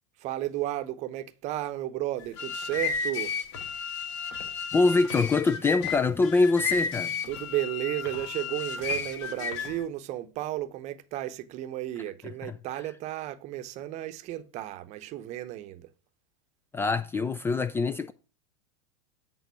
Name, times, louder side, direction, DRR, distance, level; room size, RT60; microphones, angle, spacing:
voice 1, 0.2-3.3 7.3-15.9, right 14 dB, 45° right, 0.8 m, -33 dB
sound 1, 2.2-9.8, left 5 dB, 65° left, 1.3 m, -33 dB
voice 2, 4.7-7.1 16.7-18.1, left 3 dB, 15° left, 0.3 m, -24 dB
8.1 x 3.7 x 5.5 m
hypercardioid pair, 115°, 17 cm